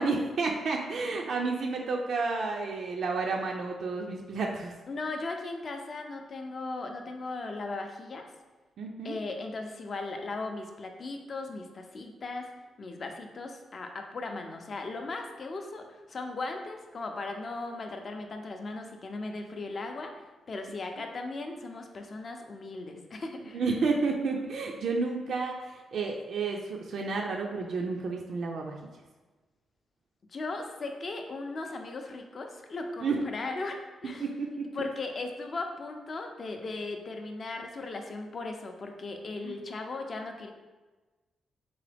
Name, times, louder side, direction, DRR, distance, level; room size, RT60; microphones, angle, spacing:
voice 1, 0.0-4.7 8.8-9.2 23.5-28.8 33.0-33.2 34.2-34.5 39.4-39.6, right 4 dB, 60° right, 1 dB, 0.4 m, -31 dB
voice 2, 4.9-8.2 9.0-12.5 12.8-20.1 20.5-23.6 30.3-34.2 34.7-40.5, left 3 dB, 40° left, 4 dB, 0.5 m, -37 dB
3.8 x 3.8 x 3.3 m, 1.2 s
wide cardioid pair, 150°, 0 cm